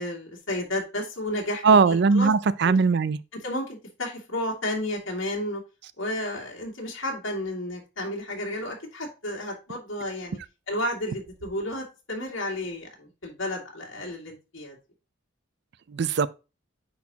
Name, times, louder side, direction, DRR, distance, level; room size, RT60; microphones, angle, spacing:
voice 1, 0.0-2.3 2.6-2.8 3.3-5.6 6.0-10.4 10.7-14.8, left 1 dB, 85° left, 2.3 m, -32 dB
voice 2, 1.6-3.2 15.9-16.3, right 5 dB, 60° right, 0.4 m, -19 dB
9.5 x 4.2 x 2.8 m
head